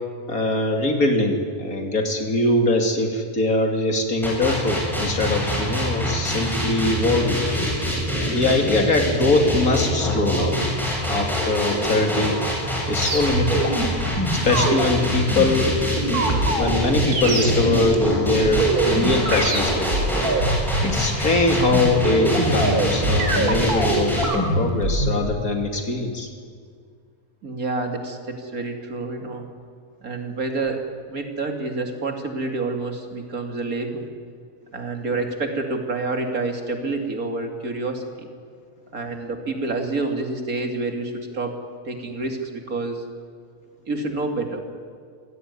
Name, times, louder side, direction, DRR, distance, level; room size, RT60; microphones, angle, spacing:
voice 1, 0.3-7.4 8.3-10.7 11.1-12.4 12.9-13.6 14.4-15.8 16.2-20.0 20.8-26.3, left 2 dB, 70° left, 3 dB, 3.2 m, -22 dB
sound 1, 4.2-24.2, equal, ahead, 7.9 m, -25 dB
sound 2, 13.0-25.2, right 2 dB, 85° right, 3.4 m, -24 dB
voice 2, 27.4-29.5 30.0-34.1 34.7-38.3 38.9-41.5 41.8-43.0 43.9-44.6, right 3 dB, 70° right, 4 dB, 3.0 m, -28 dB
26.5 x 17.0 x 9.7 m, 2.1 s
omnidirectional pair, 1.6 m